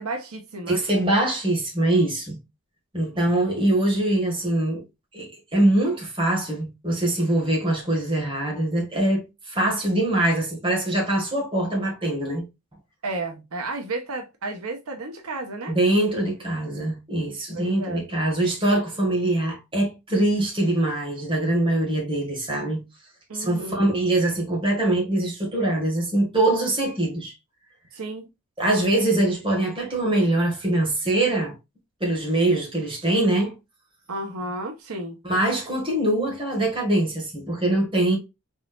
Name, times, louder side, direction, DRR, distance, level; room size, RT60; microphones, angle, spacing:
voice 1, 0.0-0.8 13.0-15.7 17.5-18.0 23.3-23.9 27.9-28.3 34.1-35.2, right 2 dB, 90° right, 1.0 m, -32 dB
voice 2, 0.7-2.4 2.9-4.8 5.1-12.4 15.7-22.8 23.3-27.3 28.6-31.5 32.0-33.5 35.2-38.2, right 1 dB, 25° right, 1.8 m, -23 dB
4.1 x 3.8 x 2.4 m
head